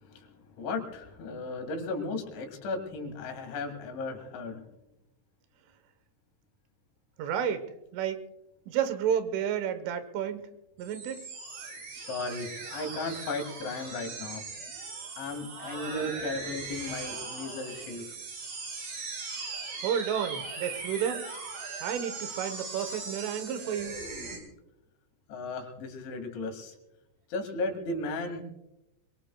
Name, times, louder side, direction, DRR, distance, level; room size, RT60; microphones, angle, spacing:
voice 1, 0.0-4.7 11.9-14.4 15.2-18.2 25.3-26.7 27.3-28.4, left 2 dB, 75° left, 4 dB, 4.3 m, -35 dB
voice 2, 7.2-8.2 8.7-10.5 10.8-11.3 19.8-21.3 21.8-24.0, right 8 dB, 90° right, 10 dB, 3.7 m, -31 dB
sound 1, 10.8-24.4, right 4 dB, 50° right, 4.8 m, -39 dB
24.0 x 22.5 x 2.3 m, 0.94 s
omnidirectional pair, 5.5 m